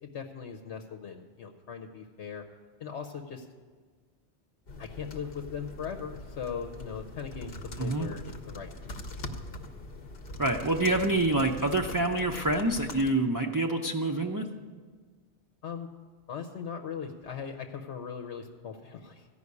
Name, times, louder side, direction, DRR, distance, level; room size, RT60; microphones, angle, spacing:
voice 1, 0.0-2.5 2.8-3.5 4.8-8.7 15.6-15.9 16.3-19.3, left 7 dB, 85° left, 5 dB, 1.1 m, -39 dB
sound 1, 4.7-13.1, left 2 dB, 60° left, 1.0 m, -42 dB
voice 2, 7.8-8.1 10.4-14.4, right 2 dB, 25° right, 1 dB, 0.4 m, -27 dB
14.5 x 5.7 x 9.6 m, 1.5 s
omnidirectional pair, 1.1 m